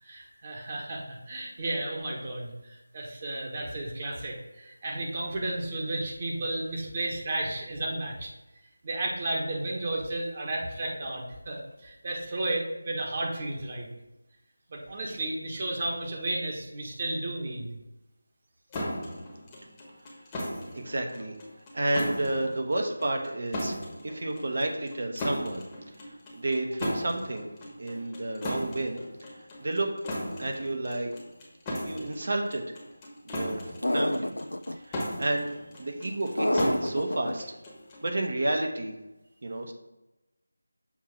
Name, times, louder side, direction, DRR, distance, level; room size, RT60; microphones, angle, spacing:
voice 1, 0.0-8.3 8.8-13.9 14.7-17.7, right 2 dB, 30° right, -1 dB, 1.3 m, -33 dB
sound 1, 18.7-38.1, equal, 15° left, 1.2 m, -37 dB
voice 2, 20.7-21.3 21.7-23.8 24.0-25.7 26.0-27.5 27.8-29.0 29.6-29.9 30.4-31.1 31.9-32.6 33.2-33.6 33.9-34.3 34.8-35.5 35.8-37.4 38.0-39.0 39.4-39.7, right 2 dB, 55° right, 3 dB, 1.2 m, -30 dB
sound 2, 33.8-34.7 36.4-37.3, left 1 dB, 90° left, 0.3 m, -27 dB
7.2 x 2.9 x 5.8 m, 0.97 s
figure-of-eight pair, 165°, 0 cm